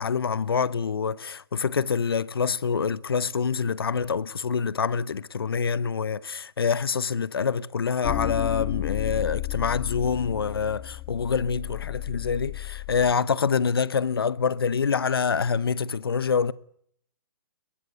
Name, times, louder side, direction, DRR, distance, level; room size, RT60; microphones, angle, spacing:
voice 1, 0.0-16.5, left 6 dB, 80° left, 0.9 m, -26 dB
sound 1, 8.0-13.1, left 19 dB, 30° left, 1.3 m, -33 dB
22.0 x 18.5 x 9.6 m
hypercardioid pair, 130°, 12 cm